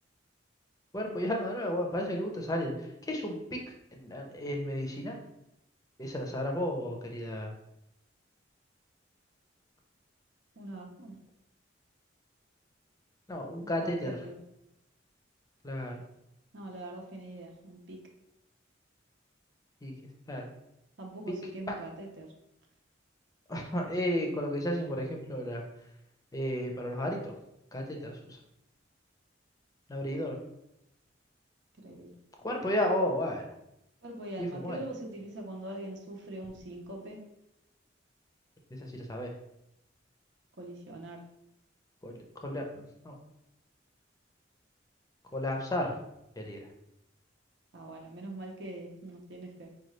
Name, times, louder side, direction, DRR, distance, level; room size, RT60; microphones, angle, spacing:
voice 1, 0.9-3.6 3.9-5.2 6.0-7.5 13.3-14.2 15.6-15.9 19.8-19.9 20.3-20.4 21.7-21.8 23.5-25.6 26.3-27.3 27.7-28.4 29.9-30.4 32.4-33.5 34.4-34.8 38.7-39.3 42.0-43.2 45.3-45.9 46.4-46.7, equal, 20° left, 2 dB, 0.6 m, -33 dB
voice 2, 10.6-11.2 13.6-14.4 16.5-18.0 21.0-22.3 31.8-32.1 34.0-37.2 40.6-41.2 47.7-49.7, right 1 dB, 65° right, 0 dB, 0.7 m, -43 dB
5.1 x 2.3 x 3.1 m, 0.83 s
head